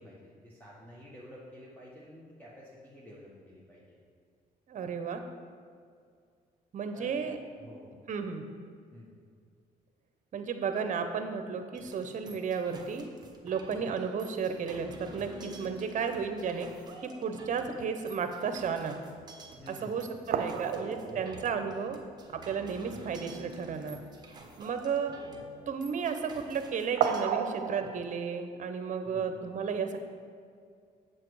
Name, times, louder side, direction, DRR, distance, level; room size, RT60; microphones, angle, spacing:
voice 1, 0.0-4.0 6.9-7.3 7.6-8.0 8.9-9.1 19.6-20.7 21.1-21.7 29.0-29.4, left 1 dB, 10° left, -6 dB, 1.4 m, -50 dB
voice 2, 4.7-5.2 6.7-7.4 8.1-8.5 10.3-13.1 13.4-16.7 17.0-18.9 19.7-22.0 22.3-24.0 24.6-25.1 25.7-30.0, right 6 dB, 55° right, 7 dB, 0.9 m, -33 dB
sound 1, 11.7-27.2, right 2 dB, 25° right, 1.1 m, -49 dB
sound 2, 19.2-19.3 19.8-19.9 20.3-22.6 22.9-23.0 23.3-23.5 27.0-28.0, right 8 dB, 80° right, 0.6 m, -33 dB
7.6 x 7.5 x 4.8 m, 2.2 s
cardioid pair, 105°, 16 cm